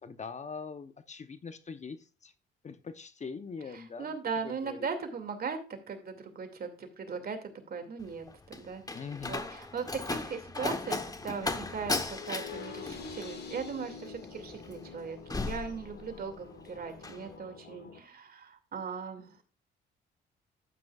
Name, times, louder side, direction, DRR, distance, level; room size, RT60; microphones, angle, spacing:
voice 1, 0.0-2.3 2.6-4.1 4.4-4.8 8.9-9.4, left 5 dB, 35° left, 11 dB, 0.8 m, -42 dB
voice 2, 3.7-5.6 5.9-7.4 7.7-9.0 9.3-19.4, right 5 dB, 50° right, 6 dB, 2.4 m, -39 dB
Slam, 8.0-16.5 16.8-17.2, left 3 dB, 20° left, 1.1 m, -37 dB
sound 1, 12.0-18.0, left 5 dB, 55° left, 2.0 m, -46 dB
12.5 x 9.0 x 2.4 m, 0.33 s
cardioid pair, 90°, 20 cm